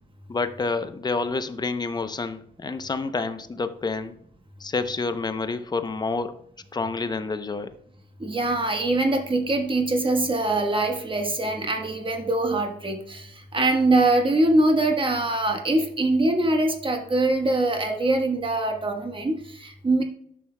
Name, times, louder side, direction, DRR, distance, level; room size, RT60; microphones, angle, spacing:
voice 1, 0.3-4.1 4.6-6.4 6.7-7.7, left 3 dB, 20° left, 10 dB, 0.7 m, -28 dB
voice 2, 8.2-20.0, right 2 dB, 25° right, 4 dB, 1.3 m, -23 dB
10.5 x 6.2 x 2.2 m, 0.66 s
cardioid pair, 90°, 20 cm